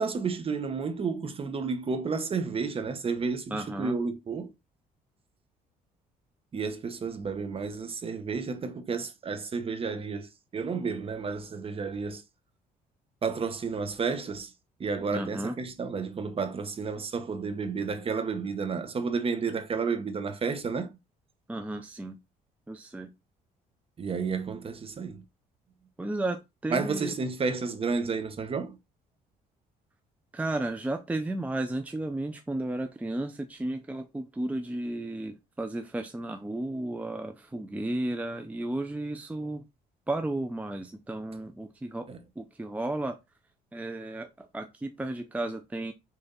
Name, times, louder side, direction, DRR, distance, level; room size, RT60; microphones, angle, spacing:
voice 1, 0.0-4.5 6.5-10.3 10.5-12.2 13.2-14.5 14.8-20.9 24.0-25.2 26.7-28.8 42.1-42.2, right 5 dB, 35° right, 1.1 m, -31 dB
voice 2, 3.5-3.9 15.1-15.6 21.5-22.2 22.7-23.1 26.0-27.1 30.3-39.6 40.1-42.1 42.4-43.2 43.7-45.9, right 2 dB, 10° right, 0.6 m, -33 dB
6.8 x 3.4 x 4.1 m
cardioid pair, 110°, 17 cm